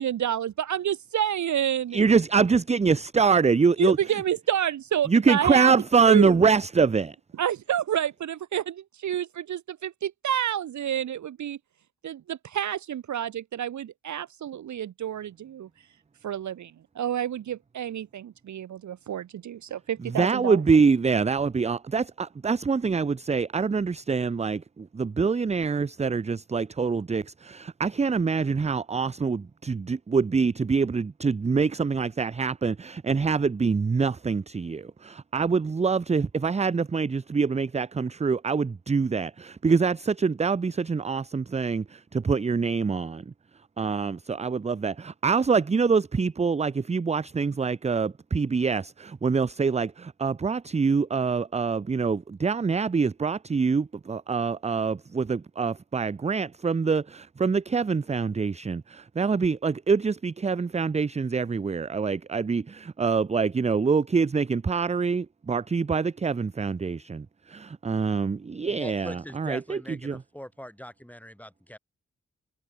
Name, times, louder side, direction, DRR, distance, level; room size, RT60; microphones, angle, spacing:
voice 1, 0.0-2.0 3.8-5.7 6.1-6.5 7.3-11.6 12.0-15.7 16.2-20.6, right 10 dB, 70° right, 0.6 m, -29 dB
voice 2, 1.9-4.0 5.1-7.1 20.2-43.2 43.8-70.2, right 5 dB, 25° right, 0.4 m, -25 dB
voice 3, 68.6-71.8, equal, 5° left, 6.6 m, -42 dB
cardioid pair, 40°, 30 cm